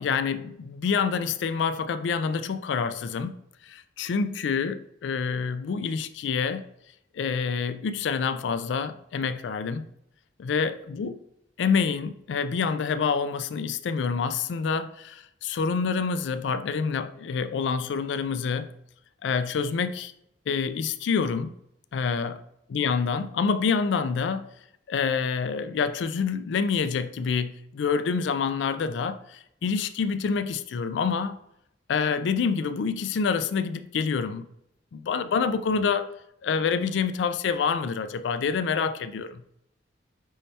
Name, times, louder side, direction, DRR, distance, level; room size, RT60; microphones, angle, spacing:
voice 1, 0.0-3.3 3.6-6.6 7.1-9.8 10.4-11.2 11.6-18.7 19.2-20.1 20.5-21.5 21.9-22.4 22.7-24.5 24.9-31.4 31.9-34.5 34.9-36.2 36.4-39.4, left 5 dB, 75° left, 12 dB, 0.3 m, -27 dB
5.5 x 3.2 x 2.7 m, 0.79 s
head